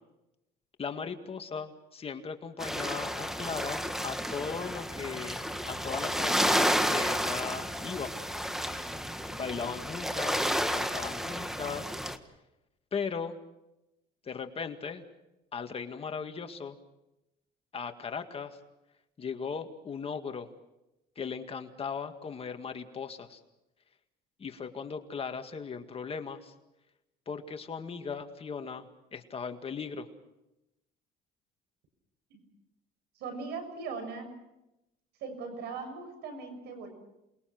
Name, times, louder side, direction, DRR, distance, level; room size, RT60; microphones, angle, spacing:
voice 1, 0.8-5.4 5.7-8.1 9.3-12.0 12.9-13.4 14.2-15.0 15.5-16.8 17.7-18.6 19.2-20.5 21.2-23.4 24.4-26.5 27.3-28.9 29.1-30.1, left 6 dB, 35° left, 6 dB, 2.0 m, -38 dB
sound 1, 2.6-12.2, equal, ahead, 1.6 m, -31 dB
voice 2, 33.1-34.3 35.2-36.9, right 4 dB, 80° right, 7 dB, 6.7 m, -39 dB
28.0 x 21.5 x 6.1 m, 0.91 s
cardioid pair, 110°, 17 cm